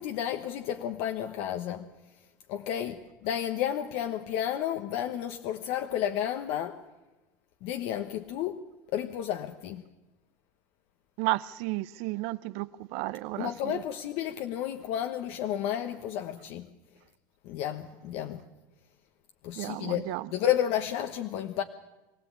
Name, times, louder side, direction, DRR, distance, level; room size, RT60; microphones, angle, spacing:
voice 1, 0.0-1.8 2.5-6.8 7.6-8.6 8.9-9.8 13.4-16.7 17.4-18.4 19.4-21.6, left 10 dB, 70° left, 1.2 m, -32 dB
voice 2, 11.2-13.8 19.6-20.3, right 19 dB, 70° right, 0.6 m, -33 dB
23.5 x 15.5 x 8.7 m
supercardioid pair, 120°, 11 cm